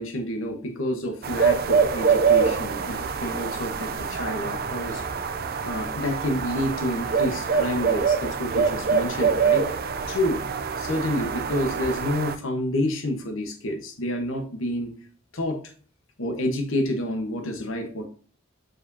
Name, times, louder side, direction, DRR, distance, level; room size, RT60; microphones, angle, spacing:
voice 1, 0.0-5.0 5.6-10.4 10.8-14.9 15.3-15.7 16.2-18.1, left 1 dB, 75° left, 4 dB, 1.1 m, -29 dB
sound 1, 1.2-12.4, right 6 dB, 45° right, 0.5 m, -25 dB
7.6 x 5.0 x 2.7 m, 0.42 s
head